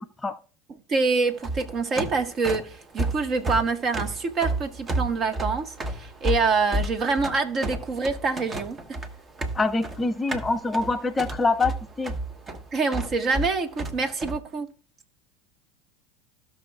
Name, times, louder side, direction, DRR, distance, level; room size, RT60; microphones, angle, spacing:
voice 1, 0.9-8.8 12.7-14.7, right 4 dB, 40° right, 1.4 m, -26 dB
sound 1, 1.3-14.4, right 1 dB, 25° right, 1.2 m, -31 dB
voice 2, 9.5-12.1, left 3 dB, 20° left, 0.6 m, -25 dB
17.0 x 6.0 x 2.3 m
hypercardioid pair, 90°, 0 cm